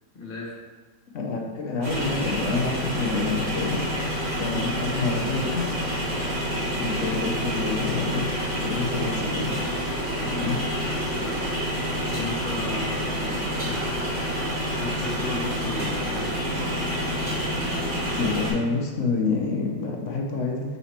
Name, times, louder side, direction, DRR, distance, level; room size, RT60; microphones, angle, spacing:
voice 1, 0.1-0.6 10.2-10.5 12.1-16.6, left 2 dB, 35° left, -3 dB, 1.2 m, -36 dB
voice 2, 1.1-3.8 4.4-5.7 6.7-8.3 8.6-9.5 10.4-10.6 18.1-20.8, left 4 dB, 55° left, 0 dB, 0.9 m, -27 dB
sound 1, 1.8-18.5, equal, 75° right, 2.8 m, -28 dB
5.4 x 4.2 x 4.3 m, 1.3 s
omnidirectional pair, 2.0 m